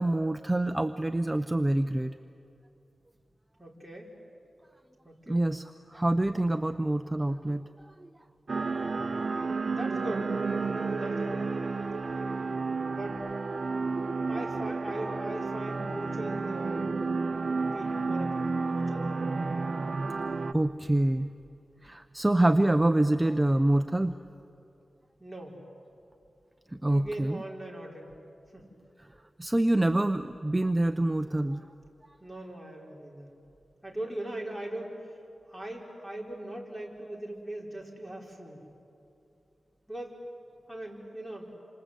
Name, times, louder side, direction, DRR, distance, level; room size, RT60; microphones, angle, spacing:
voice 1, 0.0-2.2 5.3-8.1 17.4-17.8 20.5-21.3 21.8-24.1 26.7-27.4 29.4-31.6, right 1 dB, 15° right, 9 dB, 0.6 m, -26 dB
voice 2, 3.6-4.1 5.0-5.4 9.7-10.3 11.0-11.5 12.1-12.2 12.9-13.2 14.3-16.9 17.7-19.4 25.2-25.6 26.8-28.2 28.5-28.6 32.2-33.3 33.8-35.2 35.5-38.6 39.9-40.2 40.7-41.5, right 1 dB, 10° left, -1 dB, 4.7 m, -40 dB
sound 1, 8.5-20.5, right 4 dB, 50° right, 0.7 m, -31 dB
28.0 x 26.0 x 8.2 m, 2.7 s
wide cardioid pair, 110°, 0 cm